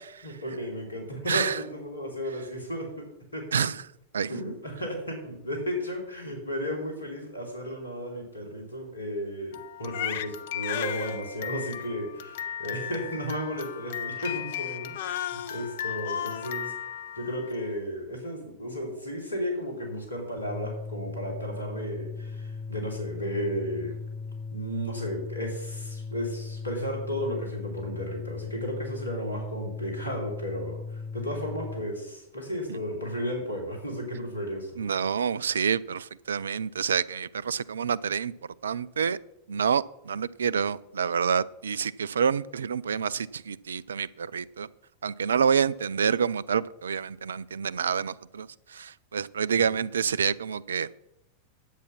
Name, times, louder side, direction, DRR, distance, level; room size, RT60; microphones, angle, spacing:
voice 1, 0.2-3.0 3.3-3.4 4.2-16.7 17.2-24.0 24.5-34.7, equal, 80° left, 3.0 m, -34 dB
voice 2, 1.3-1.6 3.5-3.8 4.1-4.3 34.8-38.3 38.6-39.2 39.5-44.7 45.0-50.9, right 7 dB, 70° right, 0.4 m, -28 dB
Crying sobbing, 9.5-17.7, left 10 dB, 55° left, 0.6 m, -35 dB
sound 1, 20.4-31.8, left 4 dB, ahead, 1.8 m, -38 dB
10.5 x 8.3 x 5.8 m
figure-of-eight pair, 90°, 0 cm